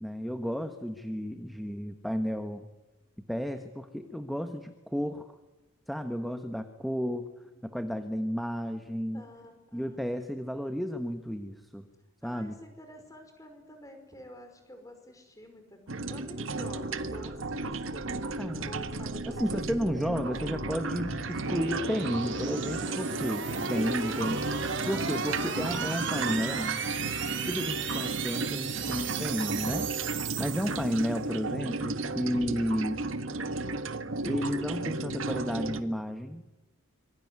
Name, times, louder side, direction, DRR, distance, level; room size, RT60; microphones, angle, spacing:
voice 1, 0.0-2.7 3.3-5.3 5.9-7.3 7.6-9.2 9.7-11.9 12.2-12.5 18.4-18.7 19.3-24.4 24.9-26.8 27.5-29.9 30.4-33.0 34.2-36.4, equal, ahead, 7 dB, 1.3 m, -32 dB
voice 2, 9.1-10.0 12.2-20.2, left 1 dB, 15° left, 6 dB, 5.3 m, -49 dB
sound 1, 15.9-35.8, right 2 dB, 75° right, 1.7 m, -34 dB
sound 2, 17.3-31.3, right 6 dB, 60° right, 4.8 m, -37 dB
26.5 x 23.5 x 9.7 m, 1.1 s
head